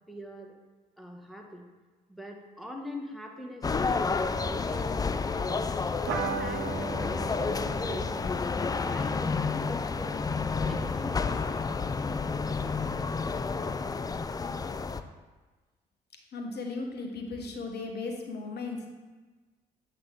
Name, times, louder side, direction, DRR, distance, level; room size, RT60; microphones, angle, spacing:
voice 1, 0.1-0.5 1.0-1.6 2.1-5.6 6.2-8.1 8.6-10.2 10.7-11.3, left 1 dB, ahead, 1 dB, 1.3 m, -42 dB
sound 1, 3.6-15.0, left 4 dB, 20° left, 0.4 m, -30 dB
sound 2, 6.1-11.0, right 5 dB, 65° right, 0.8 m, -38 dB
voice 2, 16.3-18.9, left 3 dB, 55° left, 2 dB, 1.2 m, -36 dB
7.8 x 4.1 x 3.8 m, 1.3 s
hypercardioid pair, 45°, 21 cm